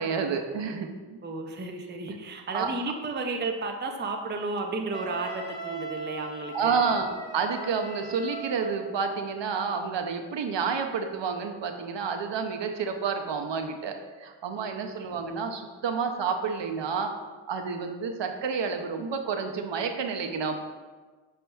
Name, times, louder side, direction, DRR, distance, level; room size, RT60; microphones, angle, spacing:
voice 1, 0.0-1.2 2.5-2.7 6.5-7.1 7.3-17.1 17.5-20.6, right 5 dB, 70° right, 5 dB, 0.5 m, -30 dB
voice 2, 1.2-6.9 14.5-14.7, right 3 dB, 25° right, 3 dB, 0.4 m, -33 dB
Wind instrument woodwind instrument, 4.9-8.8, right 2 dB, 70° left, 0.8 m, -39 dB
5.6 x 4.2 x 2.3 m, 1.4 s
wide cardioid pair, 90°, 46 cm